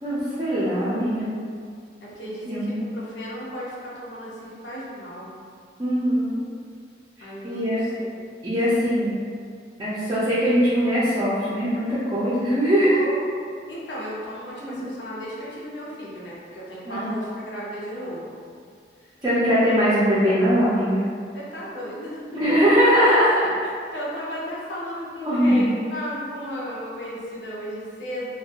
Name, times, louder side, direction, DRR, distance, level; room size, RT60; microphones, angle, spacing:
voice 1, 0.0-1.3 2.5-2.7 5.8-6.4 7.4-7.8 8.4-9.1 9.8-13.0 14.6-14.7 16.9-17.3 19.2-21.0 22.3-23.3 25.2-25.6, equal, 25° right, -11 dB, 0.4 m, -21 dB
voice 2, 2.0-5.3 7.2-8.1 12.8-13.2 13.7-18.4 19.0-19.1 21.3-22.6 23.3-28.3, equal, 85° left, -6 dB, 0.7 m, -35 dB
2.4 x 2.2 x 2.8 m, 2.1 s
head